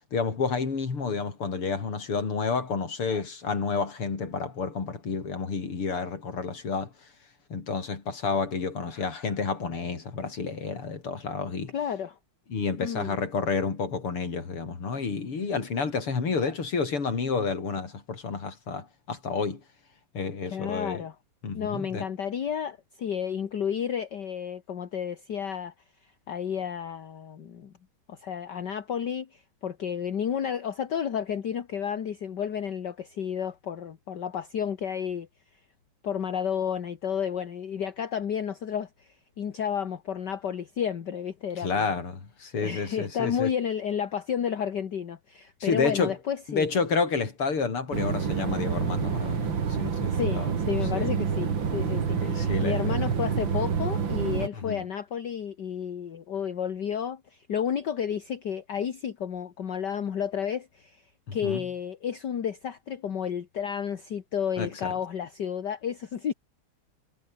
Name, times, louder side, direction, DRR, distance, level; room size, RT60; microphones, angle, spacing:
voice 1, 0.1-6.9 7.5-11.7 12.5-19.6 20.1-21.0 21.4-22.1 41.6-43.5 45.6-46.1 46.5-50.5 50.9-51.1 52.2-53.0 54.6-54.8 61.3-61.7 64.6-64.9, left 4 dB, 80° left, 4.5 m, -30 dB
voice 2, 11.7-12.2 12.8-13.2 20.5-21.2 21.5-25.7 26.3-27.7 28.1-35.3 36.0-41.9 42.6-46.7 50.1-61.0 61.3-66.3, left 8 dB, 55° left, 2.0 m, -31 dB
sound 1, 47.9-54.5, right 6 dB, 60° right, 2.9 m, -28 dB
omnidirectional pair, 2.4 m